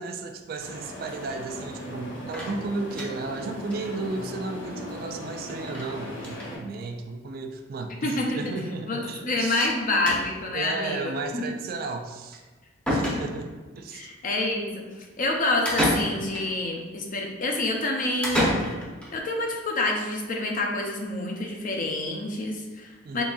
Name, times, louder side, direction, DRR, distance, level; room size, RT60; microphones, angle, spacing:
voice 1, 0.0-9.7 10.5-12.4 12.9-14.1 23.0-23.2, right 3 dB, 45° right, 5 dB, 0.3 m, -34 dB
sound 1, 0.6-6.6, equal, 85° left, 1.4 m, -38 dB
sound 2, 2.3-3.4 3.7-3.8 4.1-4.2 4.4-4.5 5.7-5.9 6.2-6.5 7.4-7.5 7.8-7.9 9.6-9.8 10.1-10.5 12.3-12.4 12.9-13.6 15.7-16.5 18.2-19.1, equal, 5° left, 0.7 m, -28 dB
voice 2, 8.0-8.4 8.9-11.4 12.9-13.2 13.9-18.5 19.1-23.2, left 2 dB, 40° left, 1 dB, 0.5 m, -28 dB
4.0 x 3.5 x 2.3 m, 1.3 s
head